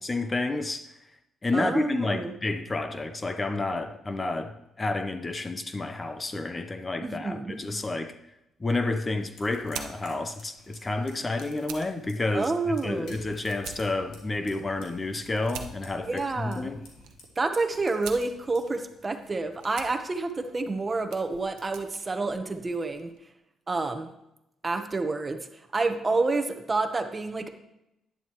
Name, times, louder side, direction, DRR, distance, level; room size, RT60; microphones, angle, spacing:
voice 1, 0.0-0.9 1.4-8.2 8.6-16.8, left 2 dB, 25° left, 0.7 m, -30 dB
voice 2, 1.5-2.3 7.0-7.7 12.3-13.2 16.1-16.7 17.4-23.1 23.7-24.1 24.6-25.5 25.7-27.5, right 3 dB, 25° right, 1.0 m, -29 dB
sound 1, 8.6-23.2, right 8 dB, 90° right, 0.8 m, -47 dB
Fire, 9.2-21.0, left 2 dB, 80° left, 2.5 m, -54 dB
11.0 x 10.0 x 3.1 m
cardioid pair, 90°, 0 cm